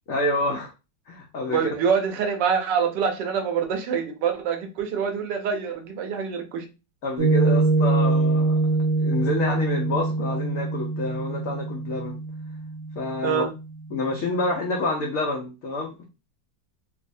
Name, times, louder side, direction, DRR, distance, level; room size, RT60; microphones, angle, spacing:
voice 1, 0.1-0.7 1.1-1.6 7.0-8.6 9.0-12.2 13.0-13.4 13.9-16.0, left 2 dB, 80° left, 0.7 m, -28 dB
voice 2, 1.5-6.7 13.2-13.5, right 7 dB, 75° right, 1.1 m, -25 dB
Piano, 7.2-13.9, right 3 dB, 45° right, 0.4 m, -24 dB
3.1 x 2.0 x 2.5 m
omnidirectional pair, 2.1 m